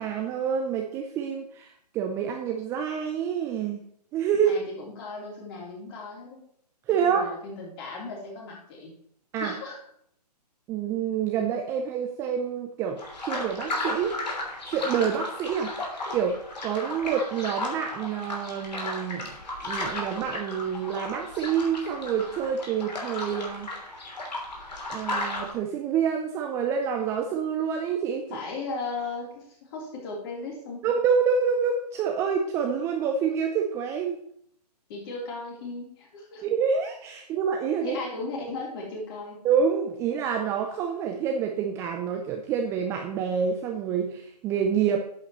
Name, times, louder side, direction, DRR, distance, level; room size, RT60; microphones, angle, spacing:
voice 1, 0.0-3.8 4.1-4.5 6.9-7.3 9.3-9.5 10.7-14.1 14.6-15.8 16.1-16.4 16.6-19.3 19.6-23.7 24.9-28.4 30.8-34.2 36.4-38.0 39.4-45.1, right 7 dB, 10° right, 3 dB, 0.5 m, -27 dB
voice 2, 4.4-6.4 7.0-8.9 9.4-9.8 28.3-30.8 34.9-36.4 37.8-39.4, left 3 dB, 35° left, -2 dB, 3.6 m, -36 dB
sound 1, 13.0-25.5, left 2 dB, 80° left, 3.2 m, -34 dB
10.5 x 8.2 x 3.1 m, 0.67 s
hypercardioid pair, 140°, 21 cm